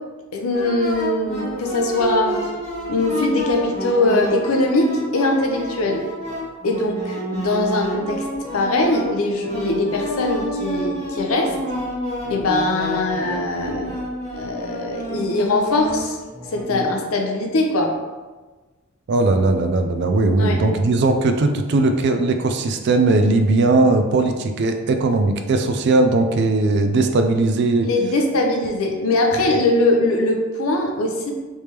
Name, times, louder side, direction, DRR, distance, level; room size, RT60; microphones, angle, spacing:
voice 1, 0.3-2.4 2.9-6.0 6.6-8.2 8.5-11.6 12.3-13.9 14.3-16.2 16.5-17.9 20.4-20.6 27.8-31.3, left 2 dB, 75° left, 2 dB, 0.6 m, -21 dB
sound 1, 0.5-16.9, equal, 35° left, 1.1 m, -29 dB
voice 2, 19.1-27.9, right 2 dB, 50° right, 6 dB, 0.3 m, -18 dB
3.4 x 3.2 x 2.9 m, 1.3 s
head